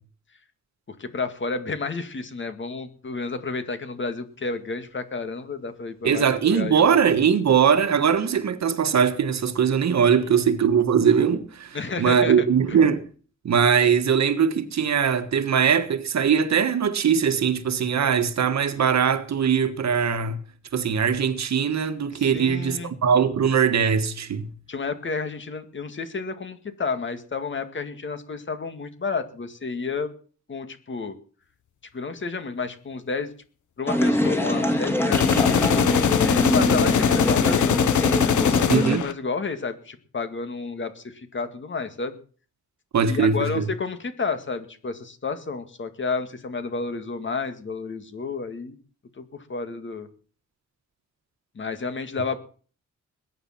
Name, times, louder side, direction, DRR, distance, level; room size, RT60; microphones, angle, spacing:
voice 1, 0.9-6.8 11.7-12.4 12.7-12.8 22.2-22.9 24.7-30.1 30.5-31.1 31.9-33.3 33.8-36.0 36.5-37.7 38.2-42.2 43.0-48.8 49.2-50.1 51.6-52.4, left 4 dB, 40° left, 2.2 m, -31 dB
voice 2, 6.0-13.1 13.4-20.4 20.7-24.5 38.7-39.0 42.9-43.6, right 7 dB, 65° right, 1.6 m, -21 dB
sound 1, 33.9-39.0, left 1 dB, 10° left, 2.9 m, -23 dB
sound 2, 35.1-39.1, left 9 dB, 75° left, 1.0 m, -22 dB
20.5 x 10.0 x 6.0 m
wide cardioid pair, 170°, 30 cm